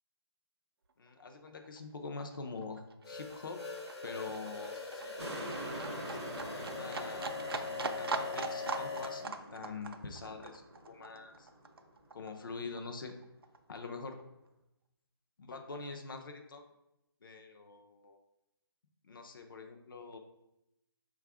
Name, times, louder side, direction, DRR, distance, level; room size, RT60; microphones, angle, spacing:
voice 1, 1.0-3.6 4.0-5.6 6.2-11.5 12.1-13.1 13.7-14.2 15.4-16.6 17.2-18.2 19.0-20.2, left 4 dB, 55° left, 4 dB, 0.5 m, -45 dB
Livestock farm animals working animals, 1.1-1.2 1.5-12.5 12.8-13.8 14.1-14.2, right 4 dB, 65° right, 0.4 m, -42 dB
sound 1, 3.0-9.3, left 4 dB, 90° left, 1.1 m, -42 dB
sound 2, 5.2-11.8 12.3-12.4, right 1 dB, ahead, 0.4 m, -46 dB
4.1 x 2.4 x 4.7 m, 0.89 s
hypercardioid pair, 175°, 13 cm